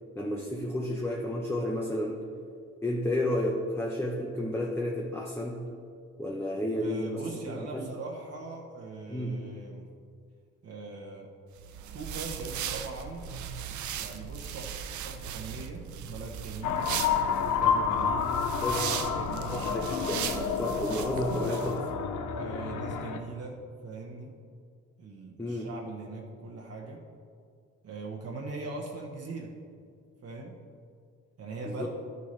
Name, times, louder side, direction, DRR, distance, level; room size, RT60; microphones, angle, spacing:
voice 1, 0.1-2.2 2.8-5.6 6.2-7.2 7.5-7.9 9.1-9.4 18.6-18.9 19.5-21.9 25.4-25.7 31.6-31.9, left 1 dB, 10° left, -1 dB, 0.9 m, -32 dB
voice 2, 6.8-9.8 10.6-11.3 11.9-13.3 13.9-14.7 15.0-17.0 17.5-18.4 18.9-19.7 22.3-24.3 25.0-27.0 27.8-29.5 30.2-30.6 31.4-31.9, right 3 dB, 55° right, -2 dB, 1.2 m, -40 dB
sound 1, 11.6-21.8, right 8 dB, 75° right, 0.6 m, -38 dB
sound 2, 16.6-23.2, left 7 dB, 85° left, 0.7 m, -30 dB
12.5 x 6.9 x 3.3 m, 2.2 s
cardioid pair, 90°, 30 cm